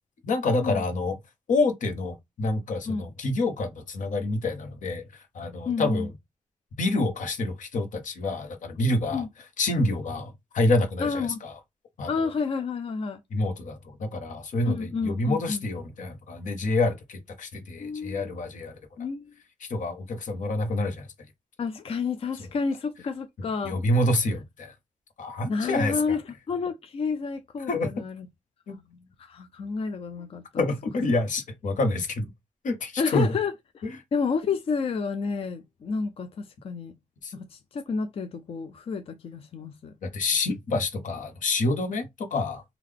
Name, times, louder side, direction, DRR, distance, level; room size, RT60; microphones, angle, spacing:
voice 1, 0.2-1.2 1.5-6.1 6.8-9.2 9.6-11.5 12.0-12.1 13.3-18.7 19.6-21.1 23.6-24.7 25.2-26.2 27.7-27.9 28.7-28.8 30.6-32.3 32.6-33.3 37.2-37.3 40.0-42.6, left 2 dB, 75° left, 1.0 m, -27 dB
voice 2, 5.7-6.1 9.1-9.3 11.0-11.4 12.1-13.2 14.6-15.6 17.8-18.3 19.0-19.3 21.6-23.8 25.5-28.3 28.7-30.4 33.0-36.9 37.3-39.9, left 5 dB, 45° left, 0.4 m, -30 dB
3.7 x 2.3 x 3.3 m
wide cardioid pair, 145°, 13 cm